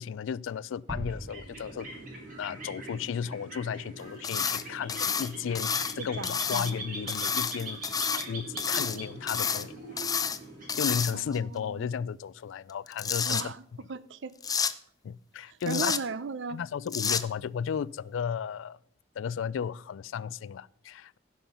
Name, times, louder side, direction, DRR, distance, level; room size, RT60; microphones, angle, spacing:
voice 1, 0.0-1.9 2.4-7.8 8.1-9.7 10.8-13.5 15.0-15.9 16.5-18.8 19.2-21.2, left 7 dB, 75° left, 0.3 m, -34 dB
sound 1, 0.9-3.6, equal, 25° right, 1.9 m, -42 dB
sound 2, 1.0-11.4, right 2 dB, 45° right, 4.1 m, -42 dB
sound 3, 4.2-4.6 4.9-5.9 6.2-6.7 7.1-8.3 8.6-9.0 9.3-9.6 10.0-10.4 10.7-11.4 12.7-13.4 14.4-14.7 15.6-16.0 16.9-17.2, left 6 dB, 20° left, 0.5 m, -29 dB
voice 2, 6.0-6.7 11.1-11.9 13.2-13.6 13.9-14.3 15.5-16.6, right 4 dB, 65° right, 0.6 m, -37 dB
15.5 x 5.7 x 5.6 m
head